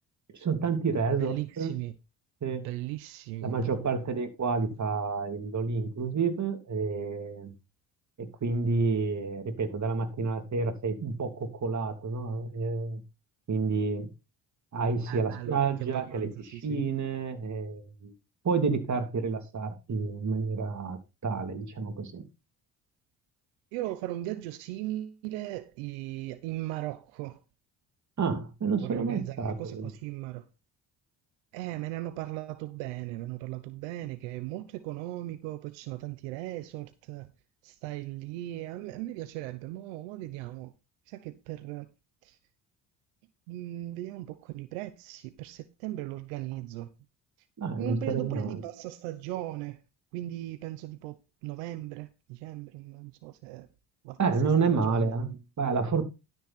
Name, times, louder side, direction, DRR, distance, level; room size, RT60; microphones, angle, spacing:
voice 1, 0.3-1.7 2.4-2.6 3.4-7.5 8.2-13.0 13.5-14.1 14.7-18.1 18.4-22.2 28.2-29.9 47.6-48.5 54.2-56.0, right 4 dB, 45° right, 3.1 m, -29 dB
voice 2, 1.2-1.9 2.6-4.1 15.1-16.8 23.7-27.4 28.8-30.5 31.5-37.3 37.6-40.7 41.1-41.9 42.2-42.4 43.5-46.9 47.8-49.8 50.1-51.2 51.4-53.7 54.0-54.2 54.6-55.4, right 16 dB, 90° right, 1.0 m, -38 dB
12.5 x 6.8 x 4.3 m
supercardioid pair, 65°, 41 cm